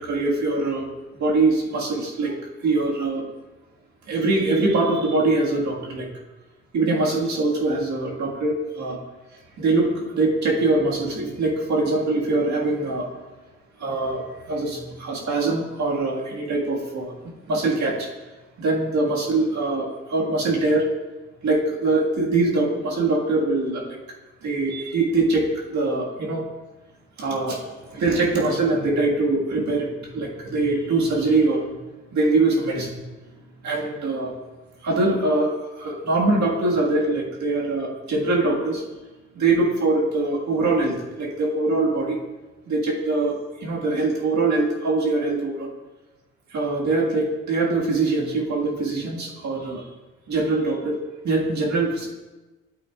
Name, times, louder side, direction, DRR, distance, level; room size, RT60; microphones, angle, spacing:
voice 1, 0.0-2.4 2.6-3.3 4.1-6.1 6.7-9.0 9.6-13.2 13.8-17.1 17.5-18.1 18.6-20.9 21.4-23.9 24.4-26.4 27.2-31.7 32.1-33.0 33.6-34.3 34.8-38.9 39.4-42.2 42.7-45.7 46.5-49.8 50.3-51.0 51.2-52.1, right 2 dB, 65° right, -2 dB, 1.8 m, -23 dB
9.1 x 8.2 x 2.4 m, 1.1 s
cardioid pair, 90°, 30 cm